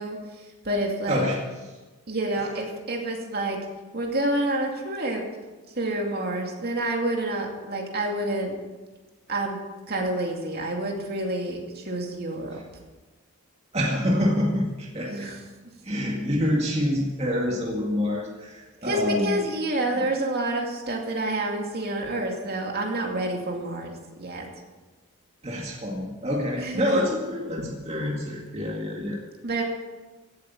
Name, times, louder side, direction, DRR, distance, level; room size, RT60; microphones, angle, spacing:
voice 1, 0.0-1.2 2.1-3.6 3.9-5.2 5.7-8.6 9.3-9.6 9.9-12.6 15.0-15.4 18.8-24.5 26.6-27.0 27.6-27.7 29.4-29.6, right 1 dB, 50° right, 1 dB, 2.5 m, -28 dB
voice 2, 1.1-1.4 13.7-15.3 15.8-19.4 25.4-29.2, left 1 dB, 30° right, -2 dB, 2.1 m, -26 dB
16.5 x 8.5 x 7.3 m, 1.2 s
head